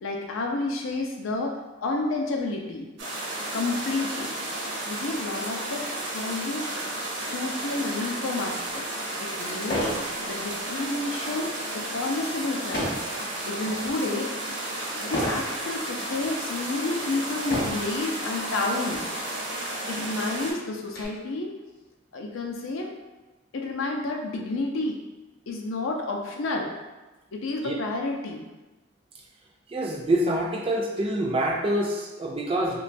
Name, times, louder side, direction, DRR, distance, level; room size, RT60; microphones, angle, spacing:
voice 1, 0.0-2.9 3.5-4.3 4.9-6.8 7.2-8.8 9.2-9.9 10.3-13.0 13.5-14.3 15.0-19.1 19.9-21.5 22.1-22.9 23.5-25.0 25.5-26.7 27.3-28.5, left 2 dB, 85° left, 1 dB, 0.4 m, -30 dB
sound 1, 3.0-20.5, right 1 dB, 70° right, 0.6 m, -33 dB
sound 2, 8.7-8.8 9.6-10.1 10.5-10.8 12.7-13.1 13.7-14.1 15.1-15.5 16.2-16.3 17.4-17.9 18.9-19.1 19.4-19.5 19.9-21.0, equal, 50° left, 0.7 m, -30 dB
voice 2, 29.7-32.8, right 1 dB, 30° right, -1 dB, 0.3 m, -26 dB
2.9 x 2.2 x 2.5 m, 1.2 s
head